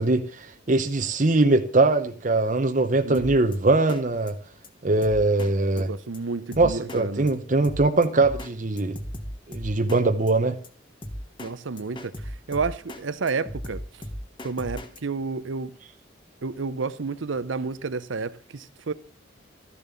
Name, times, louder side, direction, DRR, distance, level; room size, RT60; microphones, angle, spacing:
voice 1, 0.0-4.4 4.8-5.9 6.6-9.0 9.5-10.6, right 2 dB, 40° right, 0.8 m, -22 dB
Drum kit, 3.1-3.6 3.9-4.0 4.3-4.4 4.6-4.7 5.0-5.5 5.8-5.9 6.1-6.2 6.5-7.0 7.3-7.4 7.6-8.5 8.8-10.0 10.3-10.4 10.6-10.7 11.0-11.5 11.8-13.0 13.3-15.0, equal, 25° left, 1.2 m, -36 dB
voice 2, 5.8-7.3 11.4-13.8 14.4-15.7 16.4-18.9, right 4 dB, 85° right, 0.7 m, -30 dB
13.5 x 7.1 x 6.9 m
head